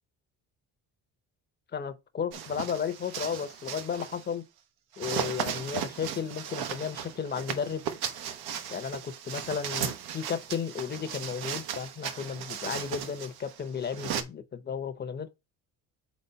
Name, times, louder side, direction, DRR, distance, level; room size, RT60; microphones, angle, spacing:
voice 1, 1.7-4.4 5.0-7.8 8.7-9.0 9.2-15.3, left 7 dB, 30° left, 0.7 m, -34 dB
sound 1, 2.3-4.3 4.9-14.2, right 9 dB, 80° right, 1.0 m, -36 dB
4.2 x 4.1 x 5.5 m
cardioid pair, 140°, 37 cm